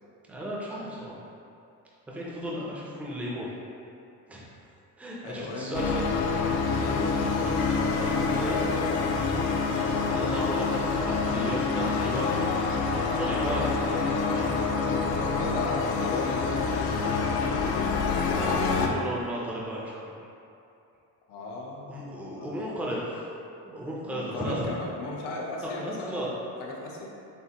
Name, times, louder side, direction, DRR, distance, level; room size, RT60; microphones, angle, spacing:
voice 1, 0.3-1.1 2.1-3.5 4.3-4.4 5.0-6.0 7.4-7.5 8.2-8.6 9.9-12.4 13.0-14.6 18.3-20.1 21.9-23.2 23.6-24.7 25.6-26.3, equal, 5° right, -5 dB, 0.4 m, -34 dB
voice 2, 5.2-5.9 6.7-7.4 7.9-9.5 9.8-10.4 15.0-17.5 21.3-22.6 24.1-26.3 26.6-27.1, left 2 dB, 90° left, -2 dB, 0.9 m, -37 dB
sound 1, 5.7-18.9, left 4 dB, 65° left, 0.5 m, -27 dB
6.8 x 2.5 x 2.9 m, 2.6 s
cardioid pair, 180°, 40 cm